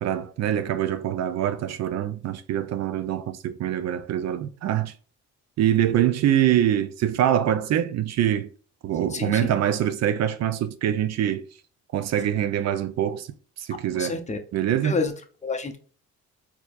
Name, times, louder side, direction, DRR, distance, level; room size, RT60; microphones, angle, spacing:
voice 1, 0.0-4.9 5.6-8.5 8.8-11.5 11.9-13.3 13.6-14.2 14.5-15.0, right 10 dB, 60° right, 0.4 m, -24 dB
voice 2, 9.1-9.5 13.9-14.4 14.8-15.1 15.4-15.8, left 4 dB, 25° left, 0.7 m, -28 dB
4.3 x 2.8 x 2.4 m
cardioid pair, 90°, 30 cm